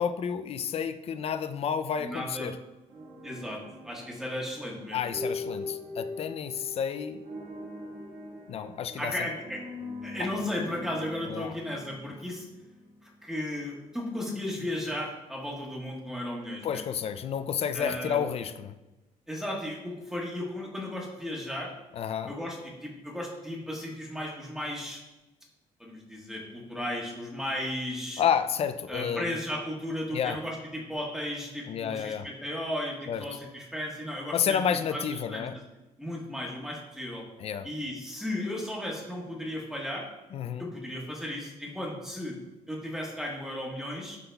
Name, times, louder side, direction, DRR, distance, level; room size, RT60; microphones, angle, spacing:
voice 1, 0.0-2.6 4.9-7.2 8.5-9.1 11.3-11.5 16.6-18.7 21.9-22.3 28.2-29.3 30.1-30.4 31.7-32.3 33.1-33.2 34.3-35.5 37.4-37.7 40.3-40.7, left 8 dB, 45° left, 10 dB, 0.4 m, -30 dB
voice 2, 2.0-2.5 3.2-5.2 9.0-9.6 10.0-12.5 13.0-16.8 17.7-18.2 19.3-21.7 22.3-25.0 25.8-28.2 28.9-34.6 34.9-35.5 36.0-37.2 37.6-40.0 40.6-42.3 42.7-44.2, left 1 dB, 5° right, -2 dB, 1.3 m, -35 dB
sound 1, 2.9-13.0, left 2 dB, 75° right, 1.3 m, -41 dB
11.5 x 3.9 x 2.3 m, 1.0 s
cardioid pair, 150°, 14 cm